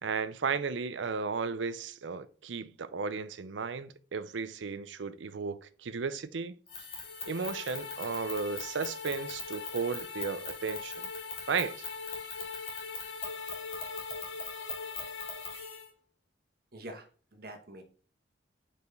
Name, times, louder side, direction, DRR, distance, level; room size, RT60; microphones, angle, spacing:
voice 1, 0.0-6.5 7.3-11.1 11.5-11.8, right 5 dB, 80° right, 0.5 m, -34 dB
sound 1, 6.7-15.8, left 4 dB, 30° left, 1.8 m, -43 dB
sound 2, 7.0-15.9, left 5 dB, 85° left, 0.8 m, -42 dB
voice 2, 16.7-17.8, right 1 dB, 50° right, 1.4 m, -46 dB
5.4 x 4.9 x 3.9 m
head